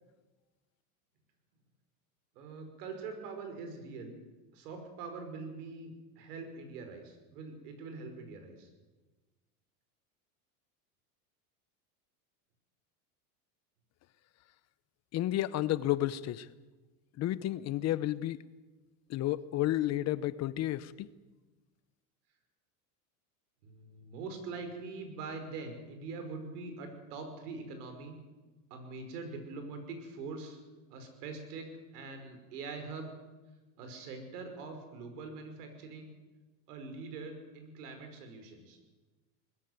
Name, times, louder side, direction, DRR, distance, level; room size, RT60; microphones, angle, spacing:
voice 1, 2.4-4.2 4.5-8.7 23.6-28.2 28.7-30.6 30.9-33.1 33.8-36.1 36.7-38.8, right 4 dB, 80° right, 6 dB, 5.5 m, -43 dB
voice 2, 15.1-16.5 17.2-18.4 19.1-21.1, left 14 dB, 35° left, 17 dB, 0.7 m, -31 dB
21.0 x 14.5 x 9.5 m, 1.2 s
supercardioid pair, 130°, 46 cm